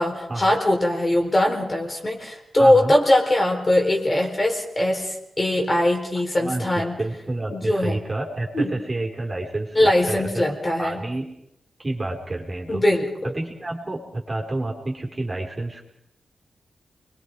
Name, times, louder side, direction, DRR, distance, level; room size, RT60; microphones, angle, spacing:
voice 1, 0.0-7.0 7.5-7.9 8.5-8.7 9.7-11.0 12.7-13.3, left 1 dB, 30° left, 0 dB, 4.3 m, -21 dB
voice 2, 2.6-2.9 6.4-11.3 11.8-12.8 13.2-15.8, right 2 dB, 25° right, 0 dB, 4.4 m, -29 dB
29.0 x 22.5 x 4.9 m, 0.77 s
wide cardioid pair, 120°, 0 cm